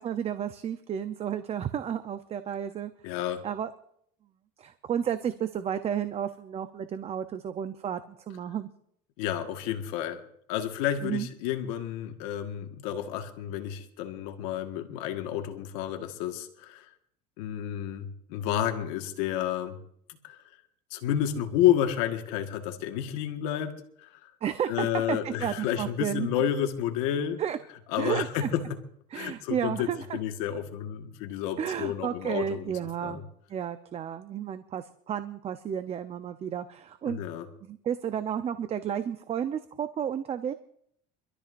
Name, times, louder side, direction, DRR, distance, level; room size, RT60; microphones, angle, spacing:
voice 1, 0.0-2.9 3.4-3.7 4.6-8.0 8.3-8.7 11.0-11.3 24.4-26.3 27.4-27.6 28.0-28.5 29.1-30.2 31.6-33.2 33.5-37.2 37.6-40.5, right 9 dB, 35° right, 10 dB, 0.7 m, -32 dB
voice 2, 3.0-3.4 9.2-10.2 10.5-16.9 17.4-19.8 20.1-20.4 20.9-24.3 24.7-27.4 27.9-28.7 29.1-32.7 33.0-33.2 37.0-37.4, left 10 dB, 85° left, 5 dB, 1.6 m, -30 dB
26.0 x 13.0 x 2.6 m, 0.68 s
cardioid pair, 125°, 18 cm